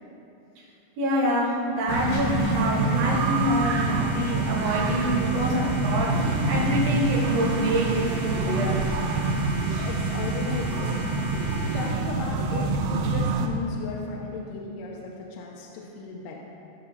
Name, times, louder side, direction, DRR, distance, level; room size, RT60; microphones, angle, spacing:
voice 1, 1.0-8.8, equal, 60° right, -5 dB, 3.2 m, -26 dB
sound 1, 1.9-11.9, left 2 dB, 65° left, 2.1 m, -39 dB
sound 2, 1.9-13.5, right 3 dB, 85° right, 2.0 m, -26 dB
voice 2, 9.8-11.0 11.3-16.4, left 4 dB, 80° left, -3 dB, 2.8 m, -35 dB
18.0 x 6.7 x 2.8 m, 2.8 s
omnidirectional pair, 5.1 m